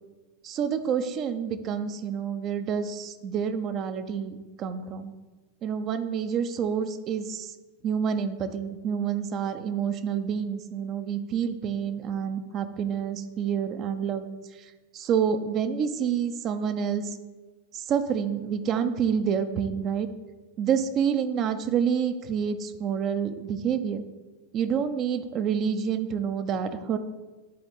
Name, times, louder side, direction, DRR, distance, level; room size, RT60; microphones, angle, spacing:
voice 1, 0.4-5.1 5.6-7.5 7.8-14.2 14.9-17.2 17.7-20.1 20.6-24.0 24.5-27.0, right 7 dB, 35° right, 9 dB, 0.5 m, -28 dB
10.5 x 4.3 x 4.0 m, 1.2 s
figure-of-eight pair, 90°, 0 cm